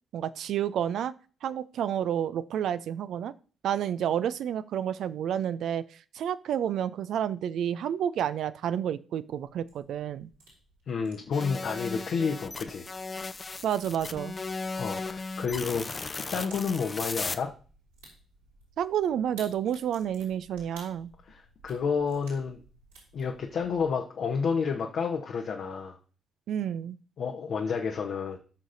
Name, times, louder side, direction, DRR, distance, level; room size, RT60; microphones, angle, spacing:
voice 1, 0.1-1.1 1.4-3.3 3.6-10.3 13.6-14.3 18.8-21.1 26.5-27.0, right 9 dB, 60° right, 13 dB, 0.4 m, -30 dB
sound 1, 9.3-24.0, right 2 dB, 85° right, 4.6 m, -56 dB
voice 2, 10.9-12.9 14.7-17.5 21.2-22.6 23.1-26.0 27.2-28.4, left 5 dB, 55° left, 2 dB, 1.0 m, -30 dB
sound 2, 11.3-17.4, left 3 dB, 35° left, 0.7 m, -36 dB
17.5 x 6.3 x 2.7 m, 0.40 s
figure-of-eight pair, 40°, 0 cm